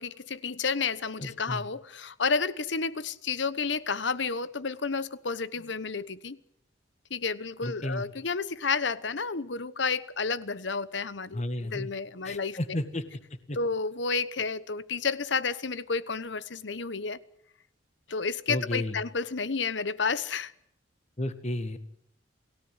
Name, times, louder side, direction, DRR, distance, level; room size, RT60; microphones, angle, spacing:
voice 1, 0.0-6.4 7.1-11.4 11.7-12.8 13.5-17.2 18.1-20.5, left 5 dB, 70° left, 1.1 m, -31 dB
voice 2, 1.2-1.6 7.6-8.0 11.3-11.9 12.2-13.0 13.5-13.6 18.5-19.0 21.2-21.8, left 1 dB, 35° left, 1.8 m, -32 dB
28.5 x 17.0 x 8.1 m
head